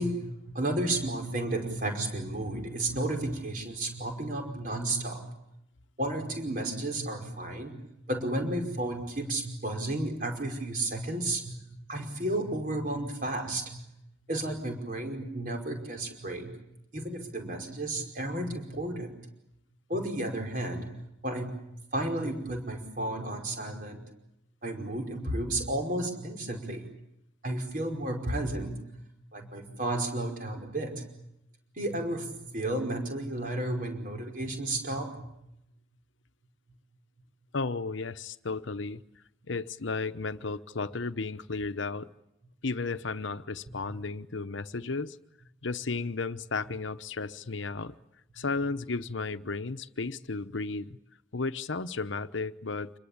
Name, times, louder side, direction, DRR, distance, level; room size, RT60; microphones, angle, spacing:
voice 1, 0.0-5.3 6.0-7.8 8.1-11.6 11.9-13.8 14.3-16.5 16.9-19.2 19.9-24.0 24.6-26.9 27.4-28.8 29.3-31.1 31.8-35.2, right 1 dB, 45° right, 4 dB, 5.2 m, -32 dB
voice 2, 37.5-39.0 39.4-42.1 42.6-45.2 45.6-47.9 48.3-51.0 51.3-52.9, left 3 dB, 75° left, 12 dB, 0.9 m, -34 dB
27.0 x 22.0 x 8.7 m, 0.83 s
head